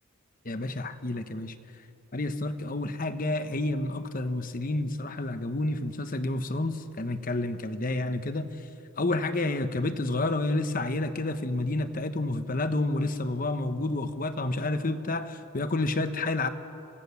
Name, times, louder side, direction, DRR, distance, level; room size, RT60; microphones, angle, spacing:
voice 1, 0.4-1.5 2.1-8.5 9.0-16.5, left 2 dB, 40° left, 10 dB, 1.0 m, -29 dB
27.0 x 17.0 x 7.0 m, 2.7 s
head